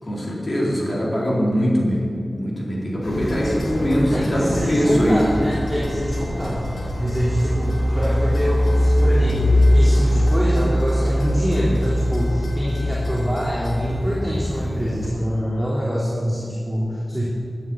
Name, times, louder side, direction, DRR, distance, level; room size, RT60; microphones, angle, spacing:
voice 1, 0.0-2.0 2.3-5.3, equal, 45° left, -4 dB, 4.2 m, -21 dB
sound 1, 3.0-15.1, equal, 85° left, 4.3 m, -22 dB
voice 2, 4.1-17.2, equal, ahead, -7 dB, 3.2 m, -25 dB
12.0 x 9.0 x 9.9 m, 2.4 s
wide cardioid pair, 85°, 0 cm